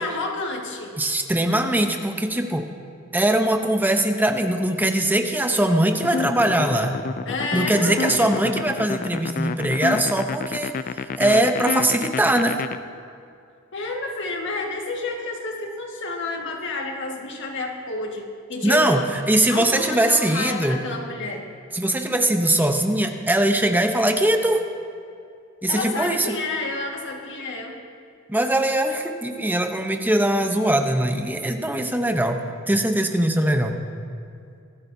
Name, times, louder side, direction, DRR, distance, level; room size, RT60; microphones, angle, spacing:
voice 1, 0.0-0.9 7.2-8.4 13.7-19.1 19.5-21.5 25.7-27.7, left 2 dB, 60° left, 1 dB, 1.7 m, -30 dB
voice 2, 1.0-2.7 3.1-7.0 7.5-10.8 11.2-12.6 18.6-19.0 19.3-20.8 21.7-24.6 25.6-26.4 28.3-32.4 32.7-33.8, right 1 dB, 10° right, 5 dB, 0.8 m, -21 dB
sound 1, 6.0-12.8, left 5 dB, 40° left, 0.4 m, -28 dB
24.0 x 12.5 x 2.7 m, 2.4 s
head